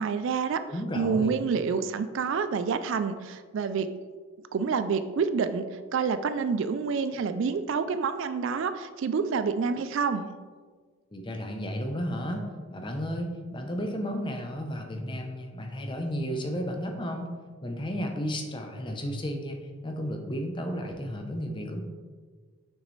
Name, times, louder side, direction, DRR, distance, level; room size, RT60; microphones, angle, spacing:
voice 1, 0.0-0.7 0.9-3.9 4.5-10.3, right 5 dB, 60° right, 11 dB, 0.3 m, -28 dB
voice 2, 0.7-1.4 11.1-17.3 17.6-21.8, equal, 20° left, 3 dB, 0.6 m, -33 dB
6.4 x 6.2 x 3.2 m, 1.5 s
head